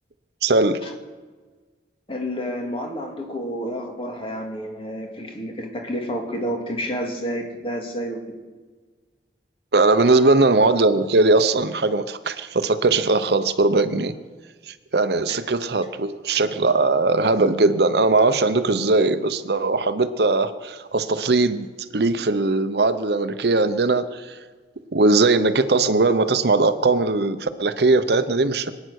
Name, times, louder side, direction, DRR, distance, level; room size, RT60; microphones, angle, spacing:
voice 1, 0.4-0.8 9.7-14.1 14.9-21.7 21.9-24.2 24.9-28.7, right 3 dB, 65° right, 11 dB, 0.8 m, -19 dB
voice 2, 2.1-8.3 15.3-15.4, equal, 30° left, 2 dB, 2.2 m, -30 dB
23.5 x 9.4 x 6.4 m, 1.4 s
head